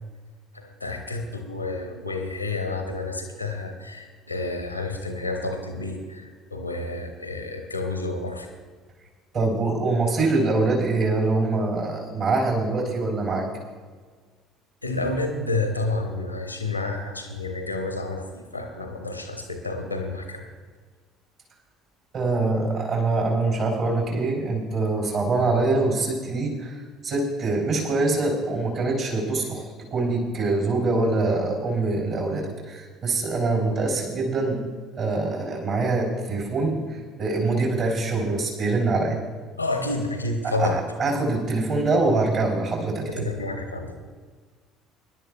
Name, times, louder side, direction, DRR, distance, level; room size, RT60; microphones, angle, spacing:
voice 1, 0.5-8.5 14.8-20.5 39.6-40.8 43.1-44.0, left 2 dB, 90° left, 4 dB, 1.1 m, -30 dB
voice 2, 9.3-13.4 22.1-26.7 27.0-34.6 35.0-36.8 37.2-39.2 40.6-43.3, right 3 dB, 50° right, -2 dB, 3.5 m, -24 dB
24.0 x 11.0 x 2.4 m, 1.5 s
figure-of-eight pair, 60°, 0 cm